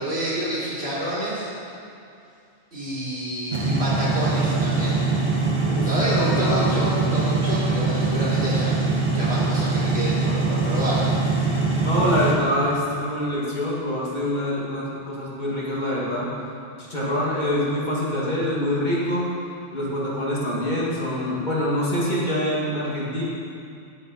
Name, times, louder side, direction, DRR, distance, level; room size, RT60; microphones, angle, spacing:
voice 1, 0.0-1.5 2.7-5.0 5.8-11.0, equal, 60° right, -9 dB, 3.9 m, -28 dB
sound 1, 3.5-12.3, right 3 dB, 85° right, 2.7 m, -23 dB
voice 2, 5.7-6.8 11.8-16.3 16.8-19.2 19.7-23.2, left 1 dB, 40° left, -7 dB, 2.5 m, -25 dB
18.5 x 7.6 x 4.1 m, 2.5 s
omnidirectional pair, 1.2 m